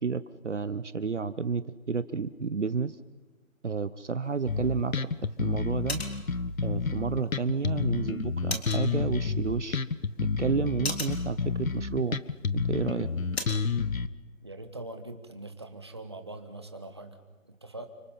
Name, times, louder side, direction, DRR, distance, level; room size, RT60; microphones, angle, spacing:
voice 1, 0.0-3.0 3.6-4.9 5.2-6.0 6.6-9.8 10.2-12.2 12.5-13.1, right 5 dB, 55° right, 14 dB, 0.9 m, -31 dB
sound 1, 4.2-13.7, left 3 dB, 45° left, 3.7 m, -42 dB
Bass guitar, 4.5-14.1, left 4 dB, 75° left, 1.3 m, -30 dB
voice 2, 14.4-17.9, right 2 dB, 20° right, 7 dB, 1.3 m, -42 dB
29.5 x 25.5 x 5.7 m, 1.2 s
figure-of-eight pair, 175°, 41 cm